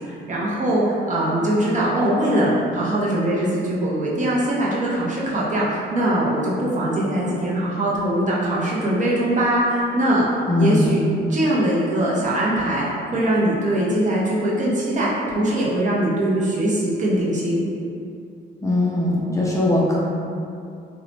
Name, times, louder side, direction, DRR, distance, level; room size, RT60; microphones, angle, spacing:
voice 1, 0.0-10.3 10.5-15.1 15.3-17.6, right 1 dB, 40° right, -6 dB, 0.7 m, -21 dB
voice 2, 10.5-10.9 18.6-20.0, left 2 dB, 15° left, -6 dB, 0.4 m, -20 dB
2.7 x 2.1 x 2.8 m, 2.5 s
cardioid pair, 90°, 20 cm